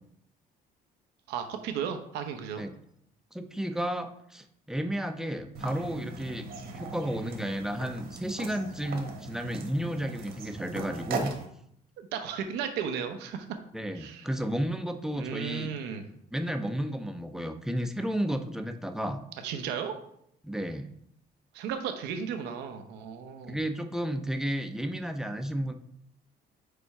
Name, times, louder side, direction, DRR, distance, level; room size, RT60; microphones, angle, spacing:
voice 1, 1.3-2.6 12.0-13.5 13.9-14.3 15.1-16.1 19.4-20.0 21.5-23.6, right 7 dB, 90° right, 7 dB, 0.8 m, -35 dB
voice 2, 3.3-6.5 6.7-11.3 13.7-15.7 16.3-19.2 20.4-20.9 23.4-25.7, equal, 5° right, 6 dB, 0.6 m, -32 dB
sound 1, 5.5-11.5, right 3 dB, 70° right, 1.3 m, -39 dB
5.2 x 4.3 x 4.7 m, 0.72 s
cardioid pair, 110°, 17 cm